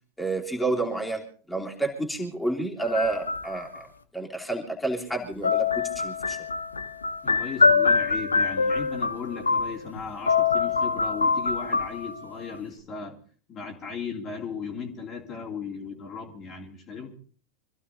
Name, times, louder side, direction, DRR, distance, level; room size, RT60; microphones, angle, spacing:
voice 1, 0.2-3.9 4.1-6.4, right 2 dB, 5° left, 3.0 m, -30 dB
sound 1, 2.8-3.8 5.4-10.0 10.3-12.4, left 4 dB, 75° left, 1.3 m, -24 dB
voice 2, 7.2-13.2 13.5-17.1, left 5 dB, 30° left, 2.8 m, -36 dB
26.0 x 15.5 x 2.8 m
figure-of-eight pair, 90°, 0 cm